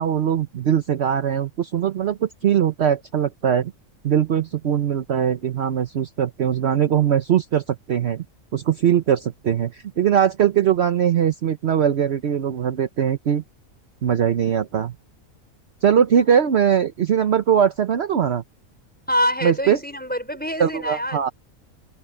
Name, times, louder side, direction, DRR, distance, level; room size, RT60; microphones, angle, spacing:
voice 1, 0.0-3.7 4.0-8.2 8.5-13.4 14.0-14.9 15.8-18.4 19.4-19.8 20.6-21.3, right 9 dB, 55° right, 1.0 m, -21 dB
voice 2, 19.1-21.3, equal, 5° left, 5.1 m, -25 dB
open air
omnidirectional pair, 1.5 m